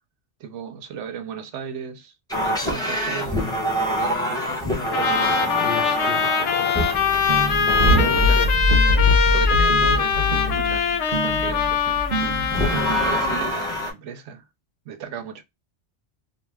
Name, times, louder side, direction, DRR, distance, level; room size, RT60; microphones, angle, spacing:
voice 1, 0.4-3.5 4.0-4.6 5.0-5.5 7.9-8.4 9.3-12.0 12.5-14.5 14.9-15.4, right 7 dB, 80° right, 0.9 m, -35 dB
sound 1, 2.3-8.6 12.5-13.9, equal, 5° left, 0.6 m, -26 dB
Trumpet, 4.9-13.5, left 6 dB, 75° left, 0.9 m, -22 dB
voice 2, 5.5-7.0 7.5-8.5, left 6 dB, 60° left, 0.7 m, -35 dB
sound 2, 7.3-13.5, left 1 dB, 50° right, 0.6 m, -23 dB
2.5 x 2.2 x 3.3 m
omnidirectional pair, 1.2 m